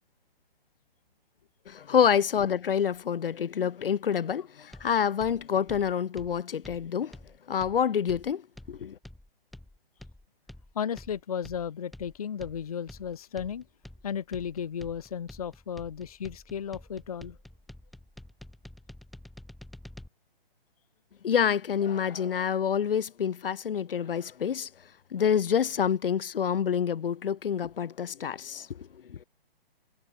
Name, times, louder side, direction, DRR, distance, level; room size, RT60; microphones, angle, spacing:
voice 1, 1.7-7.1 7.5-8.4 8.7-8.9 21.2-24.7 25.1-28.7, left 8 dB, 65° left, 1.0 m, -27 dB
sound 1, 4.7-20.1, left 1 dB, ahead, 0.5 m, -49 dB
voice 2, 10.7-13.6 14.0-17.4, left 8 dB, 35° left, 0.7 m, -34 dB
hypercardioid pair, 175°, 31 cm